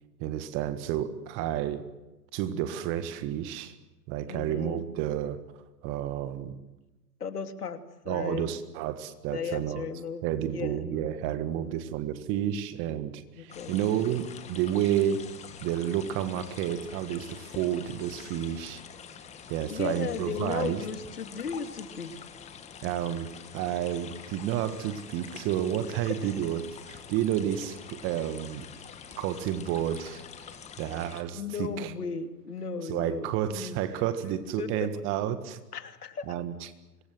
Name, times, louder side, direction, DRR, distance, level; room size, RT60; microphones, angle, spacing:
voice 1, 0.2-1.9 2.3-3.7 4.1-5.4 5.8-6.6 8.1-9.9 10.2-15.3 15.6-18.8 19.5-20.8 22.8-28.7 29.2-31.9 32.8-35.6 36.3-36.5, right 11 dB, 25° right, 11 dB, 1.6 m, -31 dB
voice 2, 4.3-4.8 7.2-8.5 9.3-11.2 11.6-11.9 13.3-13.8 19.7-22.1 31.3-33.8 34.6-34.9 35.7-36.3, left 6 dB, 65° left, 8 dB, 2.8 m, -36 dB
sound 1, 13.5-31.2, left 7 dB, 15° left, 1.9 m, -46 dB
26.0 x 22.5 x 7.8 m, 1.1 s
figure-of-eight pair, 130°, 49 cm